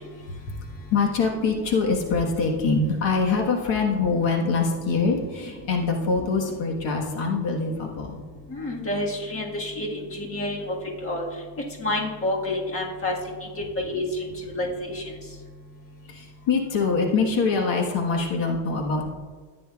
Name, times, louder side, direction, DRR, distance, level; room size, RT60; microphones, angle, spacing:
voice 1, 0.0-8.2 16.1-19.1, left 4 dB, 85° left, 1 dB, 1.5 m, -24 dB
voice 2, 8.5-10.6 11.0-11.2 11.8-13.1 13.9-14.0 14.4-14.7 14.9-15.0, left 2 dB, 30° left, -1 dB, 1.6 m, -28 dB
14.0 x 9.6 x 2.4 m, 1.5 s
cardioid pair, 145°, 43 cm